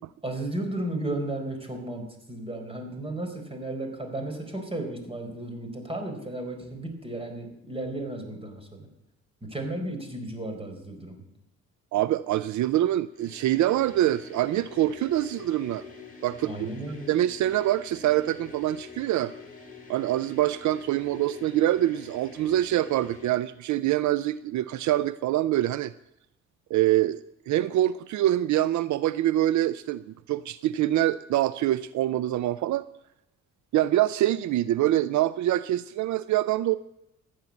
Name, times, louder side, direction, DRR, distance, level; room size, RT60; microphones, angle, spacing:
voice 1, 0.2-8.9 9.4-11.2 16.4-17.2, right 1 dB, 20° right, 4 dB, 4.5 m, -34 dB
voice 2, 11.9-15.8 16.2-16.7 17.1-19.3 19.9-25.9 26.7-32.9 33.7-36.8, right 14 dB, 70° right, 16 dB, 0.5 m, -25 dB
sound 1, 13.1-23.5, left 4 dB, 30° left, 4.9 m, -46 dB
15.0 x 9.4 x 8.4 m, 0.85 s
cardioid pair, 90°, 30 cm